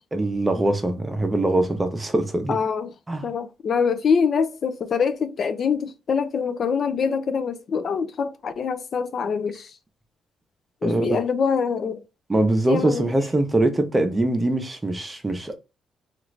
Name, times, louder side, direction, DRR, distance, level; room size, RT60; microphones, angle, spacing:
voice 1, 0.1-2.6 3.1-3.3 10.8-11.2 12.3-15.6, right 2 dB, 20° right, 0.7 m, -22 dB
voice 2, 2.5-2.9 3.2-9.7 10.8-12.0 12.7-13.1, left 6 dB, 55° left, 0.4 m, -24 dB
2.9 x 2.5 x 3.1 m
cardioid pair, 90°, 0 cm